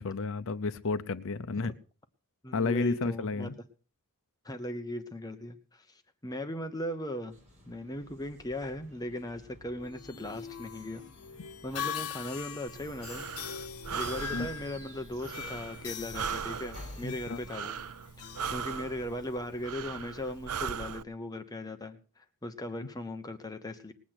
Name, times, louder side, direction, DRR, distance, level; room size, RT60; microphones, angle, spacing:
voice 1, 0.0-1.7 2.5-3.5 14.3-14.5 17.0-17.4, left 3 dB, 60° left, 11 dB, 0.7 m, -31 dB
voice 2, 2.4-3.5 4.4-7.3 7.7-11.0 11.6-13.3 13.9-17.8 18.2-23.9, left 1 dB, 15° left, 6 dB, 1.0 m, -38 dB
sound 1, 7.3-17.7, left 1 dB, 35° right, 4.0 m, -54 dB
sound 2, 9.8-19.4, left 8 dB, 80° left, 1.0 m, -42 dB
Breathing, 12.7-21.0, right 6 dB, 85° right, 0.6 m, -39 dB
20.0 x 8.4 x 6.0 m, 0.38 s
head